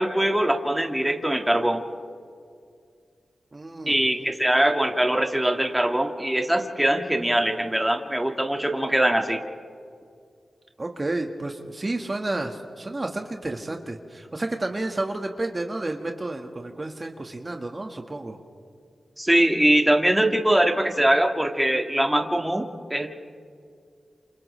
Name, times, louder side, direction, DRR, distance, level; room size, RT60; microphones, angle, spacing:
voice 1, 0.0-1.8 3.9-9.4 19.2-23.1, right 1 dB, 10° right, 4 dB, 1.8 m, -22 dB
voice 2, 3.5-4.3 10.8-18.4, right 2 dB, 35° right, 3 dB, 1.6 m, -31 dB
28.5 x 28.0 x 3.3 m, 2.2 s
cardioid pair, 50°, 0 cm